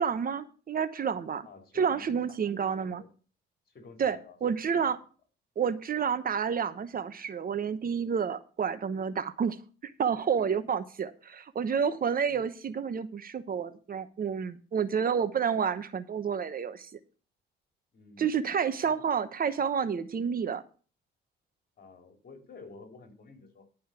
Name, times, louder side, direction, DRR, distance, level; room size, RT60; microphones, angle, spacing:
voice 1, 0.0-1.5 1.7-3.0 4.0-5.0 5.6-9.6 9.8-16.9 18.2-20.6, right 7 dB, 45° right, 12 dB, 1.0 m, -29 dB
voice 2, 1.4-3.1 3.7-4.4 4.8-4.9 10.2-10.6 12.2-12.4 17.9-18.4 18.7-19.0 21.8-23.7, left 4 dB, 50° left, 4 dB, 3.7 m, -51 dB
11.5 x 5.6 x 6.9 m, 0.37 s
cardioid pair, 90°, 20 cm